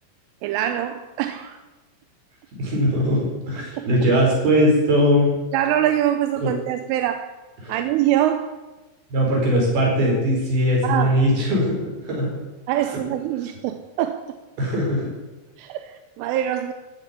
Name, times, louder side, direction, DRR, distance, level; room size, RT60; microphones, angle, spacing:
voice 1, 0.4-1.6 3.8-3.9 5.5-7.3 7.7-8.5 10.8-11.2 12.7-14.4 15.6-16.7, right 12 dB, 85° right, 8 dB, 3.2 m, -24 dB
voice 2, 2.6-5.4 6.4-6.5 7.6-7.7 9.1-11.8 12.1-12.3 14.6-15.1, equal, 50° right, -2 dB, 6.3 m, -20 dB
14.0 x 9.9 x 8.4 m, 1.1 s
omnidirectional pair, 5.8 m